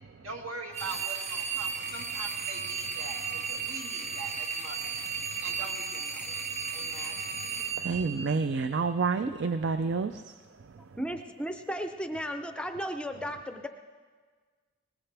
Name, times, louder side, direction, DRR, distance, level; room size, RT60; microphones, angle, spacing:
voice 1, 0.2-5.0 5.4-6.4 6.7-7.2, right 2 dB, 75° right, 0 dB, 2.3 m, -43 dB
sound 1, 0.7-8.9, right 6 dB, 35° right, 1.2 m, -35 dB
voice 2, 5.2-5.6 6.2-7.4 7.8-11.0, right 4 dB, 55° right, 10 dB, 0.4 m, -32 dB
voice 3, 11.0-13.7, equal, 5° left, 6 dB, 0.5 m, -35 dB
21.5 x 19.5 x 3.4 m, 1.5 s
head